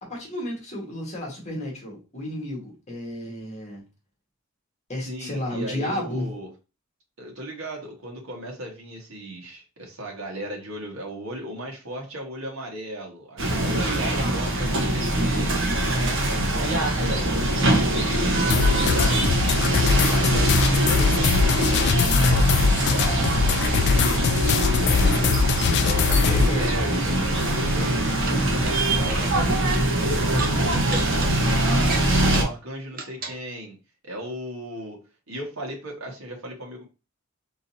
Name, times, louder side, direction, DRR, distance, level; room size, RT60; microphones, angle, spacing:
voice 1, 0.0-3.8 4.9-6.3 25.6-25.7 26.2-26.7, left 1 dB, 35° left, -2 dB, 1.7 m, -32 dB
voice 2, 5.1-6.5 7.2-18.4 18.9-19.4 19.8-25.2 25.6-27.9 28.4-32.0 32.3-33.7 34.0-35.0 35.3-36.8, equal, 80° right, -1 dB, 1.7 m, -37 dB
sound 1, 13.4-32.4, right 1 dB, 60° right, 1.3 m, -22 dB
sound 2, 18.5-26.5, left 6 dB, 55° left, 0.3 m, -22 dB
sound 3, 28.1-28.7 29.0-29.3 29.7-29.8 30.3-31.3 31.8-32.5 32.9-33.4, right 3 dB, 45° right, 0.9 m, -34 dB
4.1 x 3.8 x 2.8 m, 0.29 s
head